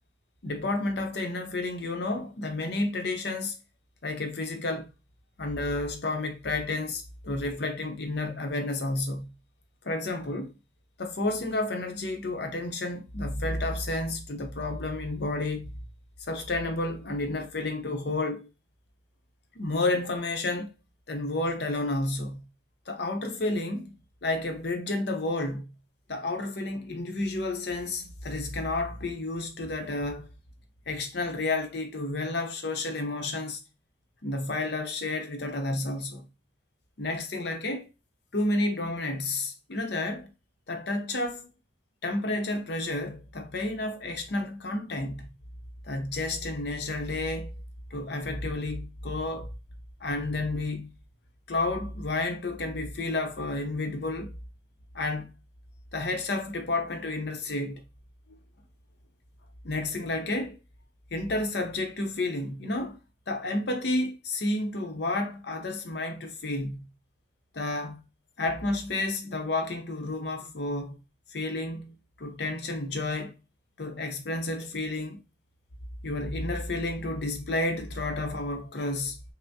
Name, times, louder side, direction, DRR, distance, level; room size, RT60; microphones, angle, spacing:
voice 1, 0.4-3.6 4.0-4.9 5.4-9.3 9.8-10.5 11.0-15.7 16.3-18.5 19.5-20.7 21.1-22.5 22.9-23.9 24.2-25.7 26.1-30.3 30.9-33.6 34.2-36.3 37.0-37.9 38.3-40.3 40.7-41.5 42.0-45.3 45.8-47.5 47.9-49.5 50.0-50.9 51.5-54.3 54.9-55.3 55.9-57.8 59.6-60.6 61.1-63.0 63.3-66.9 67.5-68.0 68.4-71.0 71.3-73.3 73.8-75.2 76.0-79.2, left 2 dB, 60° left, 0.8 m, -31 dB
5.6 x 2.1 x 2.7 m
head